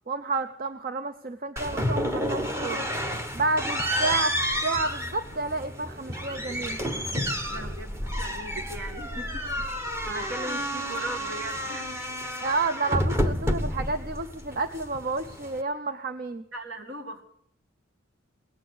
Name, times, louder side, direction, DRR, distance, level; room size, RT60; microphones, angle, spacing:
voice 1, 0.1-2.9 3.3-4.4 4.6-6.8 12.4-16.4, right 3 dB, 45° right, 9 dB, 0.7 m, -30 dB
sound 1, 1.6-15.6, equal, 15° right, 1.1 m, -30 dB
voice 2, 7.5-9.6 10.1-12.0 12.3-12.5 16.5-17.2, right 1 dB, 65° right, 5 dB, 2.2 m, -39 dB
18.5 x 9.0 x 8.1 m, 0.70 s
head